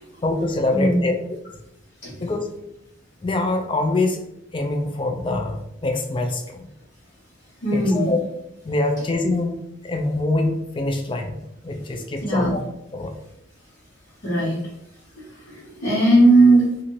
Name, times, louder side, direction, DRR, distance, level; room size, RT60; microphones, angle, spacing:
voice 1, 0.2-1.4 2.2-2.5 3.2-4.2 4.5-6.7 7.7-8.2 8.6-9.6 9.8-12.6 12.9-13.1, left 2 dB, 25° left, 4 dB, 0.4 m, -24 dB
voice 2, 0.7-1.1 2.0-2.1 7.6-8.2 12.2-12.5 14.2-14.6 15.2-16.7, right 2 dB, 65° left, -12 dB, 1.1 m, -18 dB
2.7 x 2.5 x 3.0 m, 0.81 s
head